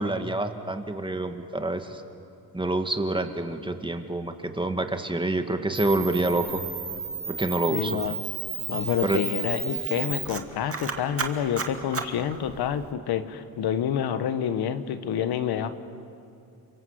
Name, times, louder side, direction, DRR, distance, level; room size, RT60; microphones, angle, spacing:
voice 1, 0.0-2.0 2.5-6.6 7.3-8.0 9.0-9.2, right 2 dB, 15° right, 6 dB, 2.1 m, -27 dB
Camera, 5.7-12.9, right 5 dB, 35° right, 2.4 m, -33 dB
voice 2, 7.7-8.2 8.7-15.8, left 9 dB, 75° left, 11 dB, 1.5 m, -28 dB
29.5 x 23.5 x 8.2 m, 2.6 s
cardioid pair, 90°, 38 cm